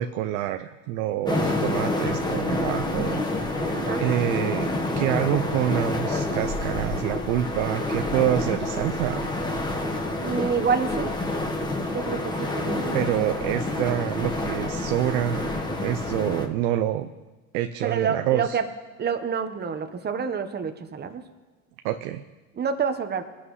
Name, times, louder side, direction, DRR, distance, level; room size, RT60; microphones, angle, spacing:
voice 1, 0.0-3.2 4.0-4.7 5.0-9.3 12.9-15.5 15.8-17.1 17.5-18.6 21.8-22.2, right 12 dB, 70° right, 9 dB, 0.7 m, -27 dB
sound 1, 1.3-16.5, left 2 dB, 10° left, 1.3 m, -28 dB
voice 2, 10.2-11.1 11.9-13.3 17.8-18.7 19.0-21.2 22.6-23.2, right 6 dB, 25° right, 8 dB, 1.1 m, -28 dB
20.5 x 11.5 x 3.2 m, 1.2 s
supercardioid pair, 100°, 44 cm